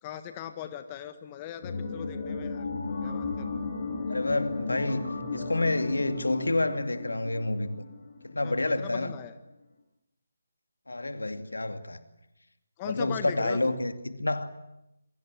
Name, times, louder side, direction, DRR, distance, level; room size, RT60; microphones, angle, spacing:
voice 1, 0.0-2.7 3.0-3.6 8.4-9.4 12.8-13.7, left 10 dB, 20° left, 1.5 m, -40 dB
sound 1, 1.6-8.7 8.9-9.0, left 3 dB, 40° left, 6.8 m, -35 dB
voice 2, 4.1-7.8 8.2-9.1 10.9-12.0 12.8-14.5, left 2 dB, 75° left, 2.6 m, -29 dB
28.0 x 23.0 x 7.7 m
figure-of-eight pair, 150°, 0 cm